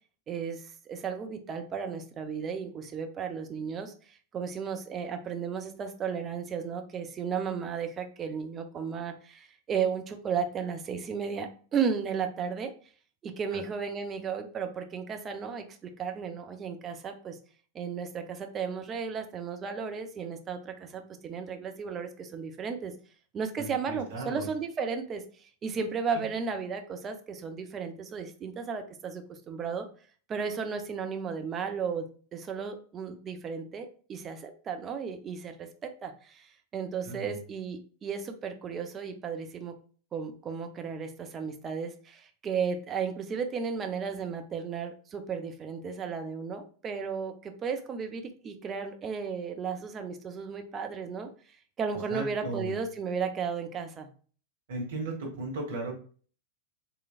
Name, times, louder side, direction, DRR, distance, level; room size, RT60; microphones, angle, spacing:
voice 1, 0.3-12.7 13.2-17.4 17.7-22.9 23.3-29.9 30.3-39.8 40.1-51.3 51.8-54.1, right 6 dB, 25° right, 6 dB, 0.5 m, -34 dB
voice 2, 23.6-24.5 26.1-26.2 37.0-37.4 52.1-52.7 54.7-55.9, right 2 dB, 55° right, 0 dB, 1.3 m, -36 dB
3.6 x 3.1 x 2.4 m, 0.41 s
figure-of-eight pair, 90°, 0 cm